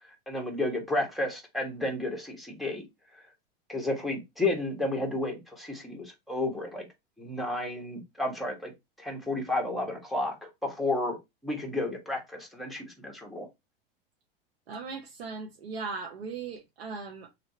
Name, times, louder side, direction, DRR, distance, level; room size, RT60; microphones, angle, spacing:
voice 1, 0.3-2.8 3.7-6.9 7.2-8.7 9.0-10.3 10.6-11.2 11.4-13.5, left 2 dB, ahead, 1.4 m, -31 dB
voice 2, 14.7-17.3, right 4 dB, 85° right, 0.9 m, -38 dB
3.3 x 2.8 x 4.1 m
hypercardioid pair, 115°, 30 cm